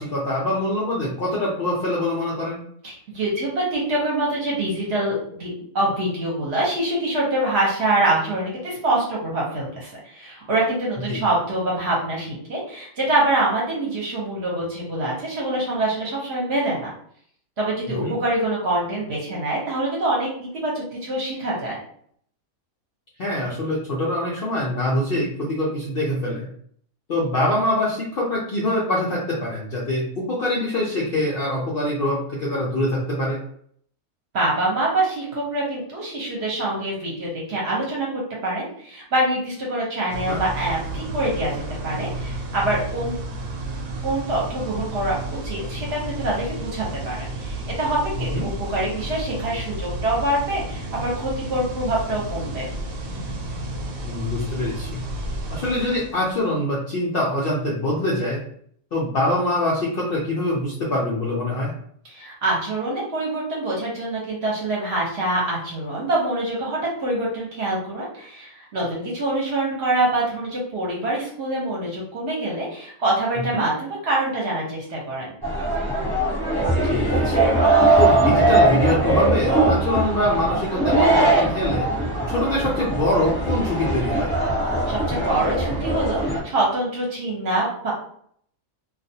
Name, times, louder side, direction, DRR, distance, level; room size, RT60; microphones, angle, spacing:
voice 1, 0.0-2.6 11.1-11.2 18.0-18.1 23.2-26.5 27.1-33.4 40.3-40.4 48.2-48.5 54.0-55.0 55.5-58.4 58.9-61.7 73.5-73.7 76.9-77.4 78.0-81.9 82.3-84.3, left 1 dB, 70° left, -4 dB, 0.5 m, -24 dB
voice 2, 2.8-16.9 17.6-21.8 34.3-43.1 44.0-45.2 45.4-52.7 62.0-75.3 84.9-87.9, right 1 dB, 55° right, -4 dB, 0.9 m, -25 dB
sound 1, 40.1-56.5, right 1 dB, 90° right, 1.1 m, -32 dB
sound 2, 75.4-86.4, right 2 dB, 20° right, 0.8 m, -20 dB
2.4 x 2.3 x 2.7 m, 0.62 s
omnidirectional pair, 1.6 m